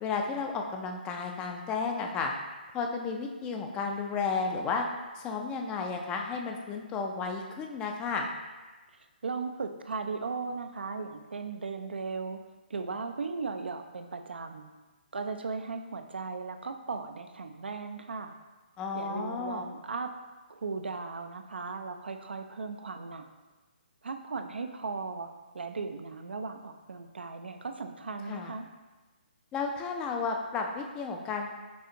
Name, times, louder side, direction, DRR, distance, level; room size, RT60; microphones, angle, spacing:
voice 1, 0.0-2.3 2.7-4.9 5.2-8.3 18.8-19.6 28.3-28.5 29.5-31.5, left 4 dB, 15° left, 2 dB, 0.4 m, -33 dB
voice 2, 9.2-12.4 12.7-14.7 15.1-18.3 18.9-20.1 20.5-23.3 24.0-28.7, right 4 dB, 80° right, 6 dB, 0.4 m, -37 dB
6.0 x 2.4 x 2.9 m, 1.2 s
figure-of-eight pair, 145°, 6 cm